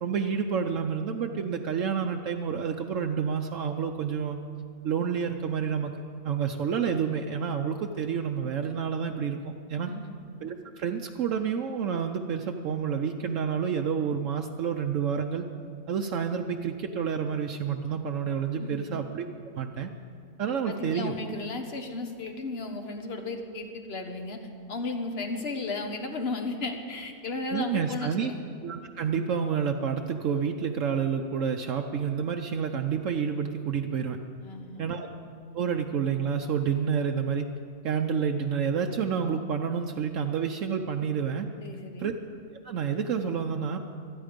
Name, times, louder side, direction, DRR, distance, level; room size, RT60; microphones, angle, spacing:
voice 1, 0.0-4.4 4.8-5.9 6.2-9.9 10.4-15.5 15.9-19.3 19.5-19.9 20.4-21.1 27.5-28.3 28.6-34.2 34.8-35.1 35.5-37.5 37.8-41.5 42.0-42.1 42.6-43.8, right 7 dB, 70° right, 4 dB, 1.0 m, -29 dB
voice 2, 20.7-24.4 24.7-28.4 34.4-35.0 41.6-42.1, left 3 dB, 50° left, 5 dB, 1.5 m, -34 dB
25.0 x 9.8 x 5.2 m, 2.2 s
omnidirectional pair, 1.4 m